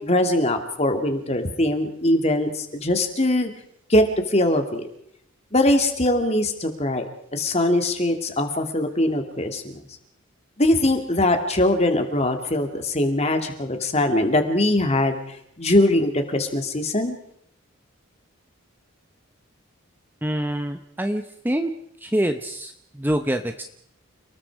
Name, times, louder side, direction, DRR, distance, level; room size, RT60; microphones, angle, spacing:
voice 1, 0.0-3.5 3.9-4.9 5.5-9.6 10.6-15.2 15.6-17.2, left 1 dB, 30° left, 6 dB, 2.7 m, -21 dB
voice 2, 20.2-21.7 22.0-23.6, right 1 dB, 10° right, 7 dB, 0.9 m, -26 dB
29.5 x 20.0 x 4.9 m, 0.70 s
head